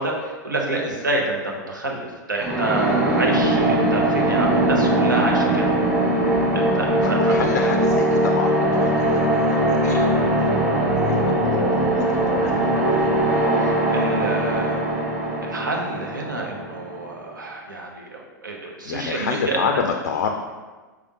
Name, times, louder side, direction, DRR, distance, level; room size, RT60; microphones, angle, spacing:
voice 1, 0.0-5.7 6.5-7.4 13.6-14.9 15.4-19.8, right 2 dB, 80° right, 0 dB, 0.8 m, -28 dB
sound 1, 2.4-17.1, right 1 dB, 15° right, 1.4 m, -21 dB
voice 2, 7.0-13.2 18.8-20.4, left 6 dB, 60° left, 4 dB, 0.3 m, -29 dB
4.7 x 3.4 x 2.8 m, 1.3 s
figure-of-eight pair, 95°, 10 cm